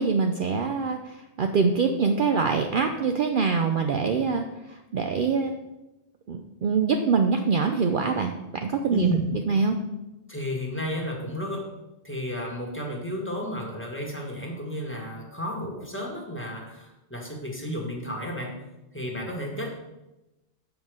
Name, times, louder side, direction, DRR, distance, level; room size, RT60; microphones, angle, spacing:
voice 1, 0.0-4.5 4.9-5.5 6.3-8.3 8.6-9.1 9.5-9.8, right 5 dB, 55° right, 5 dB, 0.7 m, -24 dB
voice 2, 8.9-9.2 10.3-11.7 12.0-18.5 18.9-19.7, equal, 10° left, -1 dB, 1.6 m, -32 dB
7.4 x 5.0 x 6.2 m, 0.98 s
omnidirectional pair, 1.1 m